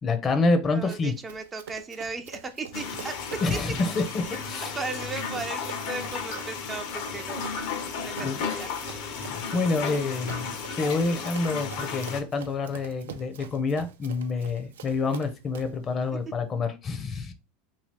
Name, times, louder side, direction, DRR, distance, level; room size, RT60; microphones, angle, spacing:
voice 1, 0.0-1.2 3.4-4.8 7.9-8.5 9.1-10.5 10.8-17.3, left 3 dB, 30° left, 0.6 m, -28 dB
voice 2, 0.7-3.6 4.3-4.4 4.7-7.4 8.2-8.8 9.4-9.6 16.1-16.2, right 4 dB, 20° right, 0.4 m, -36 dB
Run, 0.9-15.8, right 8 dB, 90° right, 0.4 m, -46 dB
sound 1, 2.7-12.2, left 5 dB, 65° left, 0.7 m, -34 dB
2.7 x 2.7 x 3.2 m
supercardioid pair, 110°, 0 cm